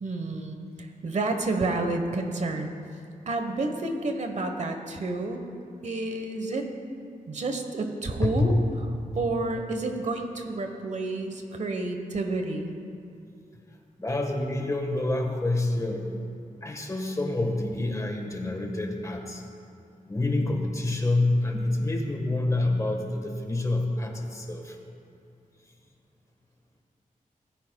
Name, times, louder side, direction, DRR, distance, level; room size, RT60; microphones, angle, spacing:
voice 1, 0.0-2.7 3.3-5.5 5.8-6.7 7.3-8.5 9.2-12.7, right 2 dB, 55° right, 5 dB, 1.1 m, -30 dB
voice 2, 8.2-8.6 9.1-9.2 14.0-16.1 16.6-19.4 20.1-24.8, left 2 dB, 25° left, 2 dB, 1.4 m, -27 dB
17.5 x 15.0 x 2.3 m, 2.5 s
wide cardioid pair, 115°, 14 cm